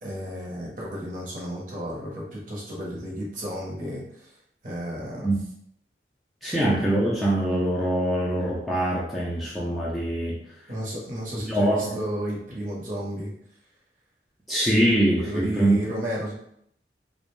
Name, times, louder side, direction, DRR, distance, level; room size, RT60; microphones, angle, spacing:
voice 1, 0.0-4.3 4.6-5.3 10.7-13.3 15.2-16.3, equal, 45° right, -4 dB, 0.8 m, -32 dB
voice 2, 6.4-10.4 11.5-12.0 14.5-15.8, right 1 dB, ahead, -7 dB, 0.4 m, -23 dB
2.4 x 2.1 x 3.0 m, 0.71 s
head